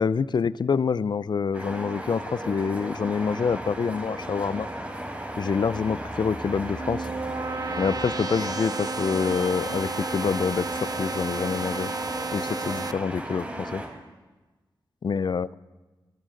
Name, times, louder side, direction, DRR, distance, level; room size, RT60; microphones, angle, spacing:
voice 1, 0.0-4.7 5.4-7.1 7.8-11.9 12.3-13.8 15.0-15.5, left 5 dB, 55° left, 19 dB, 0.4 m, -26 dB
sound 1, 1.5-13.9, right 1 dB, 15° right, 4.6 m, -35 dB
sound 2, 6.4-12.9, right 4 dB, 45° right, 0.7 m, -33 dB
22.5 x 14.0 x 3.9 m, 1.2 s
cardioid pair, 45°, 9 cm